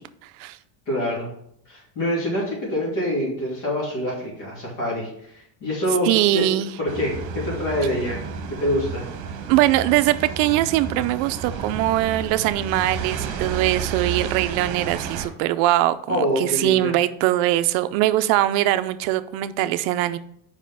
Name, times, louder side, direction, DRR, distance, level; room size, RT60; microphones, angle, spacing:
voice 1, 0.2-0.6 6.0-6.7 9.5-20.2, right 15 dB, 55° right, 12 dB, 0.5 m, -21 dB
voice 2, 0.9-1.3 1.7-6.4 6.8-8.2 8.5-9.1 16.1-16.9, equal, 55° left, -4 dB, 2.8 m, -25 dB
sound 1, 6.9-15.3, right 5 dB, 35° right, 1.1 m, -31 dB
5.2 x 5.0 x 5.7 m, 0.69 s
cardioid pair, 165°, 49 cm